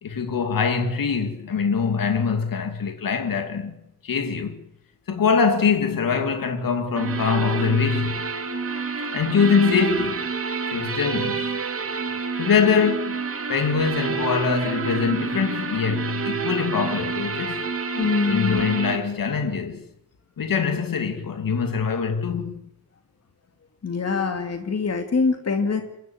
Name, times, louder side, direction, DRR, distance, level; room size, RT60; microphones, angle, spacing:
voice 1, 0.0-3.7 4.0-4.6 5.1-8.2 9.1-10.3 10.7-11.6 12.4-17.6 18.3-19.8 20.4-22.7, left 6 dB, 85° left, 2.7 m, -23 dB
sound 1, 7.0-19.0, right 5 dB, 40° right, 2.6 m, -28 dB
voice 2, 17.9-18.7 23.8-25.8, left 4 dB, 50° left, 2.4 m, -24 dB
28.5 x 12.0 x 9.2 m
wide cardioid pair, 165°, 34 cm